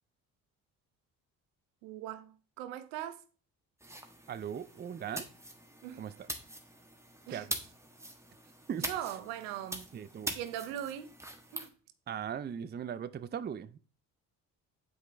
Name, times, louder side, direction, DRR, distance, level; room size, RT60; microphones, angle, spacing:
voice 1, 1.8-3.2 5.8-6.0 7.3-7.5 8.8-9.9 10.3-11.1 11.5-11.7, right 11 dB, 80° right, 0.8 m, -40 dB
sound 1, 3.8-11.7, right 1 dB, 5° right, 1.4 m, -43 dB
voice 2, 4.3-5.3 6.0-6.3 7.3-7.6 8.7-8.9 9.9-10.4 12.1-13.8, right 8 dB, 25° right, 0.5 m, -39 dB
8.0 x 4.9 x 3.4 m
hypercardioid pair, 50°, 43 cm